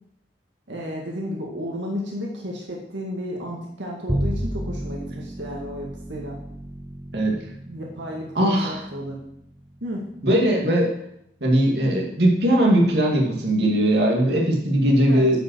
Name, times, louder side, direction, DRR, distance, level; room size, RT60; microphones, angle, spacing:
voice 1, 0.7-6.4 7.7-9.2 9.8-10.0 15.1-15.4, equal, 85° right, -2 dB, 2.0 m, -32 dB
Bowed string instrument, 4.1-10.5, right 1 dB, 10° right, 0.7 m, -33 dB
voice 2, 8.4-8.8 10.2-10.9 11.4-15.4, right 1 dB, 65° right, -1 dB, 2.1 m, -19 dB
10.0 x 5.4 x 6.3 m, 0.75 s
head